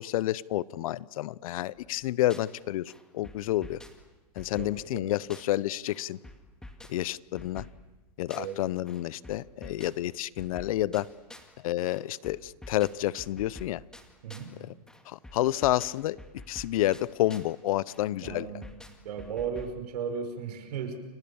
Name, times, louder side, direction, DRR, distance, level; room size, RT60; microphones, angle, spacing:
voice 1, 0.0-3.8 4.4-6.2 6.9-7.7 8.2-11.1 11.6-13.8 15.1-16.2 16.5-18.5, left 14 dB, 55° left, 22 dB, 0.8 m, -29 dB
sound 1, 1.8-2.6 2.9-5.6 5.9-8.6 8.9-11.6 11.9-14.6 14.9-17.6 17.9-19.8, left 1 dB, 5° left, 2.2 m, -49 dB
voice 2, 4.6-5.1 8.4-8.6 14.2-14.5 18.2-18.7 19.0-21.0, right 7 dB, 70° right, 7 dB, 5.6 m, -35 dB
29.5 x 26.0 x 7.1 m, 1.2 s
hypercardioid pair, 150°, 21 cm